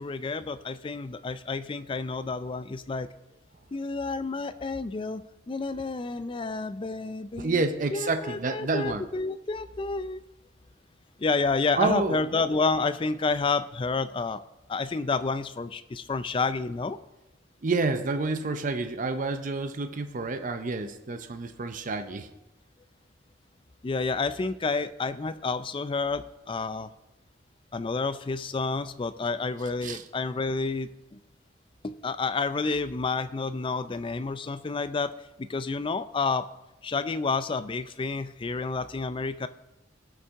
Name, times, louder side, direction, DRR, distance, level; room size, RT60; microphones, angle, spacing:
voice 1, 0.0-3.1 3.7-5.2 5.5-7.6 7.9-10.2 11.2-14.4 14.7-17.0 23.8-26.9 27.7-31.2 31.8-35.1 35.4-36.5 36.8-39.5, left 4 dB, 25° left, 13 dB, 0.4 m, -29 dB
voice 2, 7.4-9.0 11.8-12.2 17.6-22.3 29.8-30.0, right 3 dB, 45° right, 8 dB, 0.6 m, -29 dB
17.0 x 5.7 x 3.6 m, 0.95 s
head